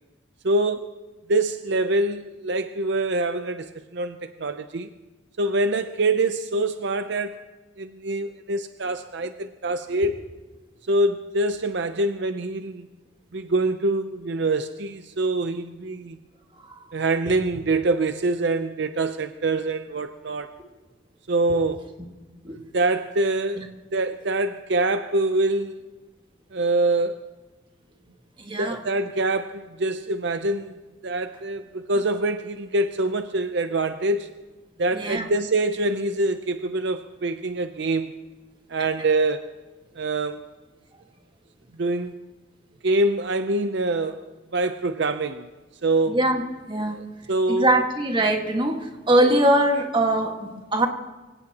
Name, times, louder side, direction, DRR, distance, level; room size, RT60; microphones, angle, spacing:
voice 1, 0.4-0.9 1.3-4.9 5.4-7.4 7.8-10.2 10.9-12.9 13.3-16.2 16.9-20.5 21.3-21.8 22.5-25.8 26.5-27.3 28.6-34.3 34.8-38.2 38.7-39.5 40.0-40.4 41.8-42.1 42.8-45.5 45.8-46.2 46.9-47.8, right 2 dB, 60° right, 9 dB, 0.6 m, -25 dB
voice 2, 28.5-28.8 34.9-35.2 46.1-46.4 46.7-47.0 47.5-50.9, right 1 dB, 25° right, 3 dB, 1.7 m, -22 dB
25.5 x 17.0 x 3.0 m, 1.2 s
head